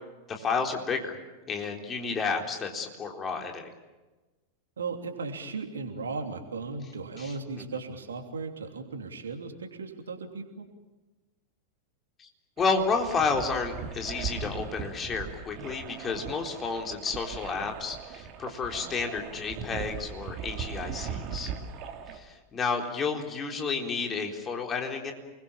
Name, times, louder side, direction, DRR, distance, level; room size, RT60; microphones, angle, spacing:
voice 1, 0.3-1.2 1.5-3.7 7.2-7.3 12.2-12.3 12.6-21.5 22.1-25.1, left 4 dB, 25° left, 3 dB, 3.9 m, -31 dB
voice 2, 4.8-10.7, right 4 dB, 70° right, 5 dB, 3.1 m, -36 dB
sound 1, 12.6-22.2, right 7 dB, 35° right, 2.7 m, -39 dB
29.0 x 21.5 x 7.3 m, 1.2 s
figure-of-eight pair, 90°, 0 cm